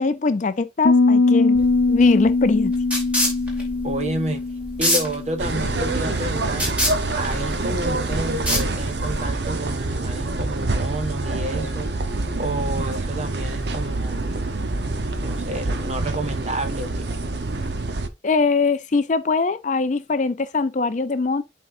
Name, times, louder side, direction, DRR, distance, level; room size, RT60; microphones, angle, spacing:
voice 1, 0.0-2.7 18.2-21.4, left 4 dB, 40° left, 0.4 m, -22 dB
Piano, 0.9-6.5, left 3 dB, 75° left, 0.9 m, -21 dB
sound 1, 1.5-9.2, equal, 5° right, 2.6 m, -27 dB
voice 2, 3.8-4.4 4.8-6.7 7.1-11.9 12.4-14.3 15.2-17.1, right 1 dB, 35° right, 1.1 m, -30 dB
sound 2, 5.4-18.1, right 2 dB, 60° right, 0.9 m, -26 dB
11.0 x 3.8 x 2.6 m
head